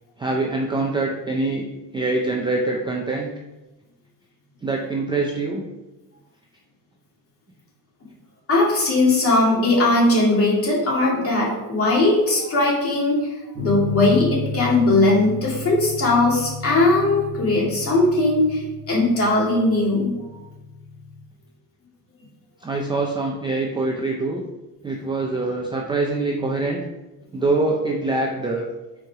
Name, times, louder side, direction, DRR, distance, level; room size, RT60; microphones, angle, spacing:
voice 1, 0.2-1.7 1.9-3.3 4.6-5.6 22.6-24.4 24.8-26.8 27.3-28.7, right 2 dB, 15° right, 0 dB, 0.4 m, -24 dB
voice 2, 8.5-20.1, left 2 dB, 35° left, -4 dB, 2.4 m, -19 dB
sound 1, 13.5-21.2, left 3 dB, 30° right, 1.5 m, -32 dB
7.6 x 4.7 x 4.7 m, 1.1 s
cardioid pair, 170°, 39 cm